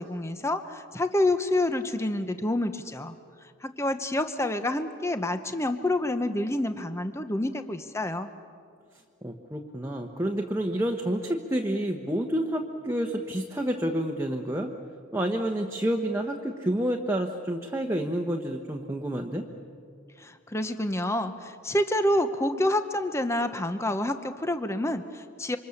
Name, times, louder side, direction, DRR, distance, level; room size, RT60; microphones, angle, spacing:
voice 1, 0.0-3.1 3.6-8.3 20.2-25.6, left 1 dB, 15° left, 9 dB, 0.8 m, -28 dB
voice 2, 9.2-14.7 15.1-19.4, right 1 dB, 10° right, 2 dB, 1.1 m, -29 dB
27.5 x 25.5 x 7.1 m, 2.2 s
head